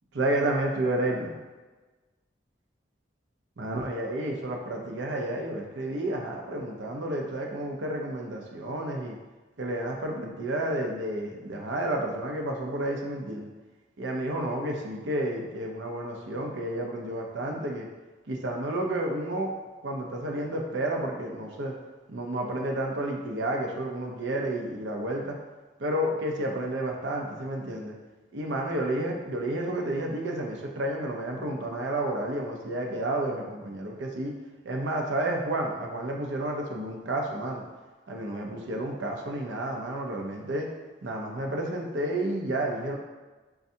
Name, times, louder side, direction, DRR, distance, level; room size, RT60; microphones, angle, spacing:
voice 1, 0.1-1.4 3.6-9.2 9.6-13.5 14.0-17.9 18.3-19.5 19.8-21.7 22.1-25.4 25.8-27.9 28.3-34.3 34.6-37.6 38.1-40.7 41.0-43.0, right 1 dB, 75° right, 1 dB, 0.6 m, -31 dB
5.4 x 2.3 x 2.6 m, 1.2 s
head